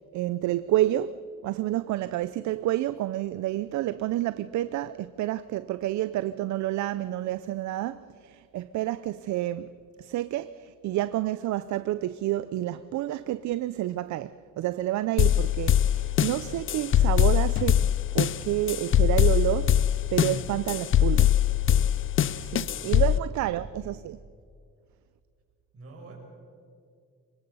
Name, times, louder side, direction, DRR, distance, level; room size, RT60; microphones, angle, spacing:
voice 1, 0.1-9.7 10.0-21.3 22.4-24.2, right 14 dB, 70° right, 0.5 m, -29 dB
sound 1, 15.2-23.2, left 11 dB, 45° left, 0.5 m, -22 dB
voice 2, 23.4-24.0 25.7-26.2, right 3 dB, 50° right, 6.0 m, -49 dB
23.5 x 20.5 x 5.5 m
cardioid pair, 130°, 30 cm